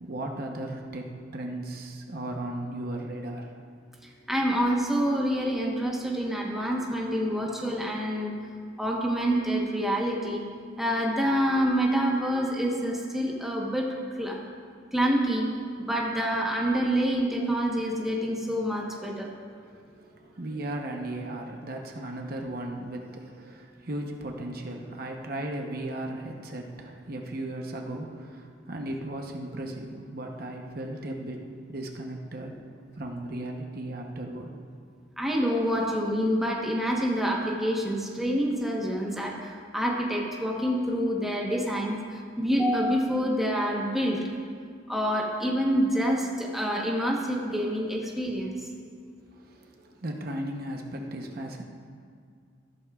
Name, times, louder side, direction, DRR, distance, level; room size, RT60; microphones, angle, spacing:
voice 1, 0.0-3.6 19.6-32.6 32.9-34.5 49.3-51.6, right 1 dB, 50° right, 2 dB, 0.9 m, -36 dB
voice 2, 4.3-8.3 8.8-10.4 10.8-13.9 14.1-14.4 14.9-15.5 15.8-19.3 35.2-44.2 44.9-48.6, equal, ahead, -2 dB, 1.0 m, -27 dB
14.0 x 12.0 x 2.4 m, 2.2 s
head